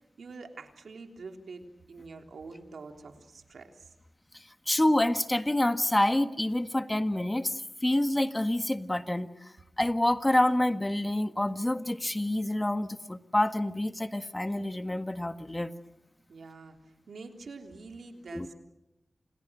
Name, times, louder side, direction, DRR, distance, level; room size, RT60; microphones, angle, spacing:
voice 1, 0.2-3.9 16.3-16.8 17.1-18.5, right 4 dB, 90° right, 4 dB, 3.4 m, -46 dB
voice 2, 4.3-9.5 9.8-15.7 18.3-18.5, left 1 dB, 20° left, 9 dB, 1.6 m, -27 dB
29.5 x 28.5 x 6.4 m, 0.87 s
cardioid pair, 60°, 0 cm